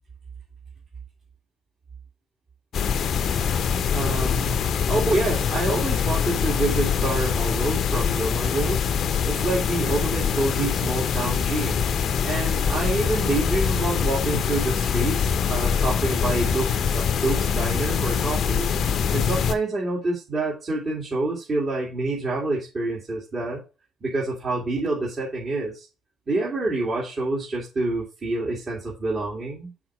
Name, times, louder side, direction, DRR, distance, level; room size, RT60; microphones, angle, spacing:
sound 1, 2.7-19.5, left 7 dB, 60° left, 0.6 m, -24 dB
voice 1, 3.9-8.8 9.2-11.9 12.2-18.7 19.1-23.6 24.0-25.9 26.3-29.7, right 2 dB, 45° right, -5 dB, 2.4 m, -27 dB
6.2 x 4.4 x 4.9 m, 0.31 s
hypercardioid pair, 55°, 0 cm